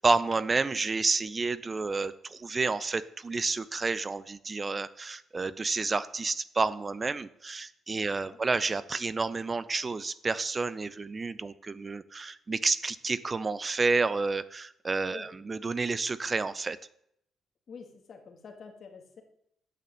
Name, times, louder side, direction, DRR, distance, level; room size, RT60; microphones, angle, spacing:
voice 1, 0.0-16.8, right 3 dB, 30° right, 16 dB, 0.4 m, -30 dB
voice 2, 7.9-8.4 15.0-15.3 17.7-19.2, left 5 dB, 55° left, 4 dB, 1.9 m, -48 dB
8.6 x 6.3 x 7.4 m, 0.74 s
cardioid pair, 90°, 0 cm